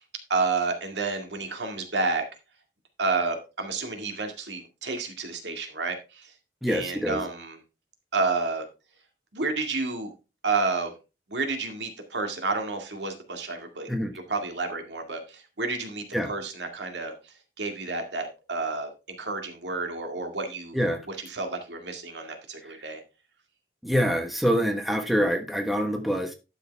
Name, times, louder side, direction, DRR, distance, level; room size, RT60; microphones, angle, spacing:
voice 1, 0.3-2.2 3.0-6.3 6.7-7.6 8.1-8.6 9.3-10.1 10.4-10.9 11.3-13.9 14.3-17.1 17.6-18.9 19.2-20.8 21.2-23.0, right 3 dB, 90° right, 2.1 m, -30 dB
voice 2, 6.6-7.2 13.9-14.1 16.1-16.3 20.7-21.0 22.6-22.8 23.8-26.3, equal, ahead, 1.3 m, -25 dB
11.5 x 6.6 x 3.4 m
head